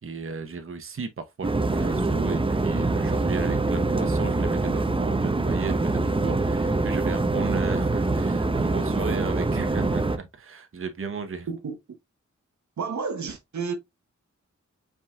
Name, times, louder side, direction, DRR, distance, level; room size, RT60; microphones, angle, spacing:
voice 1, 0.0-11.5, right 4 dB, 45° right, 0.9 m, -34 dB
sound 1, 1.4-10.2, right 2 dB, 20° right, 0.6 m, -24 dB
voice 2, 11.5-12.0 12.8-13.7, right 5 dB, 70° right, 0.9 m, -31 dB
5.3 x 3.7 x 2.3 m
cardioid pair, 45°, 29 cm